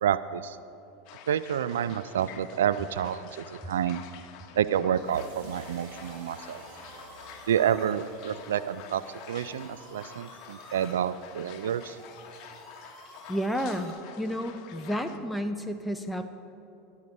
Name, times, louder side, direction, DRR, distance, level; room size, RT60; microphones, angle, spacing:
voice 1, 0.0-0.6 1.3-4.1 4.5-6.6 7.5-9.0 9.3-12.0, right 9 dB, 80° right, 15 dB, 0.3 m, -29 dB
sound 1, 1.0-15.2, left 8 dB, 55° left, 1.0 m, -49 dB
sound 2, 4.9-13.9, right 1 dB, 25° right, 2.1 m, -52 dB
sound 3, 5.1-11.4, right 3 dB, 55° right, 1.9 m, -53 dB
voice 2, 13.3-16.3, equal, 5° left, 6 dB, 0.6 m, -31 dB
13.5 x 8.2 x 5.2 m, 2.8 s
hypercardioid pair, 95°, 0 cm